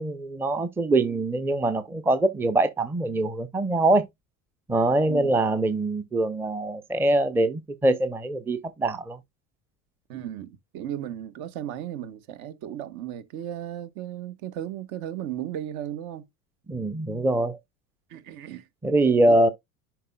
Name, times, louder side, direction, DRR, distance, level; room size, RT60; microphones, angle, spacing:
voice 1, 0.0-4.0 4.7-9.2 16.7-17.6 18.8-19.5, right 2 dB, 5° right, 0.6 m, -23 dB
voice 2, 10.1-16.3 18.1-18.7 19.3-19.4, right 11 dB, 55° right, 1.3 m, -35 dB
10.5 x 4.6 x 2.3 m
hypercardioid pair, 85°, 44 cm